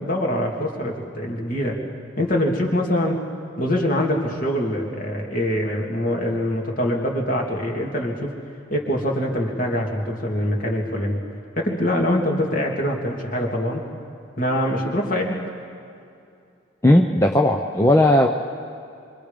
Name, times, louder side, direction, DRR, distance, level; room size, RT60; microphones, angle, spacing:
voice 1, 0.0-1.8 2.2-3.2 3.6-8.3 8.7-11.2 11.6-13.8 14.4-15.4, left 1 dB, 40° left, 0 dB, 2.7 m, -24 dB
voice 2, 16.8-18.3, left 1 dB, 15° left, 1 dB, 0.7 m, -16 dB
27.0 x 25.0 x 5.3 m, 2.5 s
head